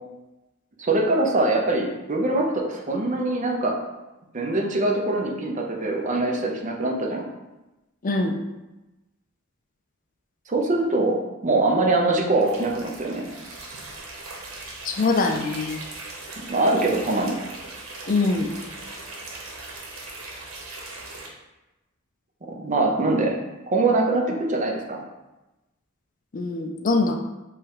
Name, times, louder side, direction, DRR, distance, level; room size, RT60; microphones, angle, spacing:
voice 1, 0.8-3.7 4.3-7.2 10.5-13.3 16.5-17.4 22.5-23.3 23.7-25.0, right 2 dB, 35° right, 0 dB, 0.7 m, -23 dB
voice 2, 8.0-8.4 14.8-15.8 18.1-18.5 26.3-27.2, left 3 dB, 40° left, 4 dB, 0.4 m, -23 dB
sound 1, 12.4-21.3, right 2 dB, 85° right, 1.1 m, -39 dB
3.5 x 3.1 x 4.7 m, 1.0 s
head